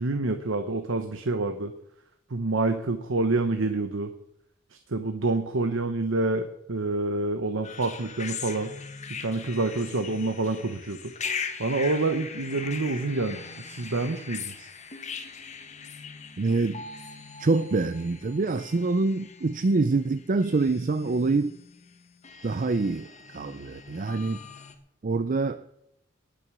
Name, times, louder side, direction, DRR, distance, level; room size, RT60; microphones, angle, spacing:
voice 1, 0.0-1.7 2.3-4.1 4.7-8.7 9.2-11.1 11.6-14.7, right 2 dB, 85° right, 8 dB, 1.0 m, -27 dB
sound 1, 7.6-24.8, left 5 dB, 35° left, 1.3 m, -40 dB
voice 2, 16.4-16.8 17.4-21.5 22.4-24.4 25.0-25.7, right 3 dB, 45° right, 13 dB, 0.5 m, -25 dB
19.5 x 6.9 x 6.2 m, 0.80 s
head